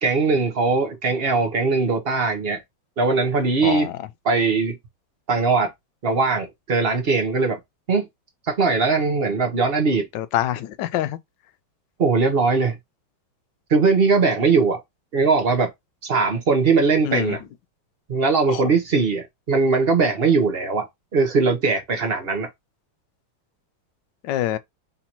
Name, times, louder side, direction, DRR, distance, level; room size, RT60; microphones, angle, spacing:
voice 1, 0.0-2.6 3.0-3.9 4.2-4.8 5.3-5.7 6.0-7.6 7.9-8.0 8.5-10.1 12.0-12.8 13.7-14.8 15.1-15.7 16.0-17.4 18.1-20.9 21.1-22.5, right 4 dB, 40° right, 0.9 m, -20 dB
voice 2, 3.6-3.9 10.1-11.2 17.1-17.4 18.5-18.6 24.2-24.6, left 12 dB, 75° left, 1.1 m, -25 dB
4.0 x 2.8 x 4.3 m
omnidirectional pair, 2.2 m